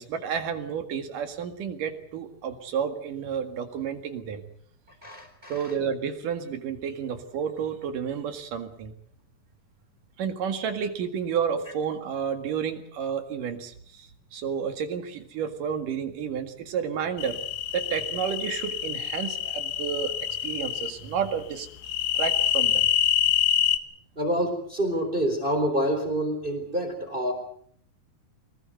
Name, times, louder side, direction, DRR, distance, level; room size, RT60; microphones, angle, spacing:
voice 1, 0.0-4.4 5.5-8.9 10.2-17.4 17.7-20.1 20.4-21.7 22.2-22.9, right 7 dB, 85° right, 7 dB, 3.6 m, -31 dB
voice 2, 5.0-5.5 24.2-27.3, right 1 dB, 15° right, 6 dB, 4.0 m, -27 dB
sound 1, 17.2-20.9 21.8-23.8, left 11 dB, 90° left, 3.0 m, -26 dB
25.0 x 19.5 x 7.9 m, 0.62 s
omnidirectional pair, 3.7 m